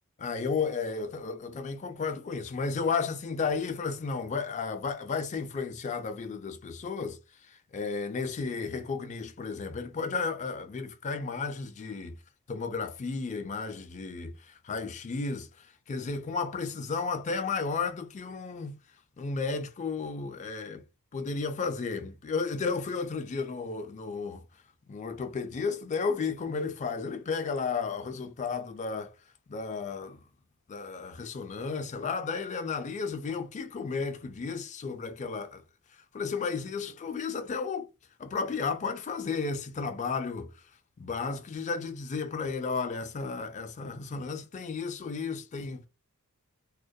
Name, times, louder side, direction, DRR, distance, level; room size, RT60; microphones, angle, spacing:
voice 1, 0.2-7.2 7.5-12.2 12.5-18.8 19.2-20.8 21.1-24.4 24.9-29.1 29.5-30.2 30.7-35.6 36.1-37.9 38.2-40.5 41.0-45.9, left 4 dB, 35° left, 0.3 m, -33 dB
2.2 x 2.2 x 2.6 m
head